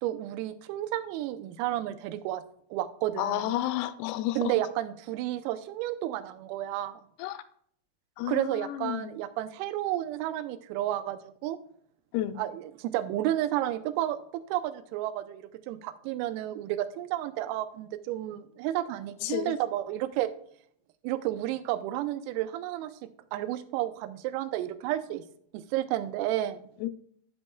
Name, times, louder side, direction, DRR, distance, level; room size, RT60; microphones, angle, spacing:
voice 1, 0.0-2.4 2.7-3.6 4.4-7.0 8.3-11.6 12.4-20.3 21.0-22.9 23.3-25.2 25.5-26.7, right 13 dB, 90° right, 12 dB, 3.3 m, -31 dB
voice 2, 3.2-4.5 7.2-7.4 8.2-9.2 12.1-12.4 19.2-19.5 26.8-26.9, left 13 dB, 90° left, 12 dB, 3.3 m, -31 dB
15.5 x 5.5 x 2.2 m, 0.63 s
omnidirectional pair, 6.0 m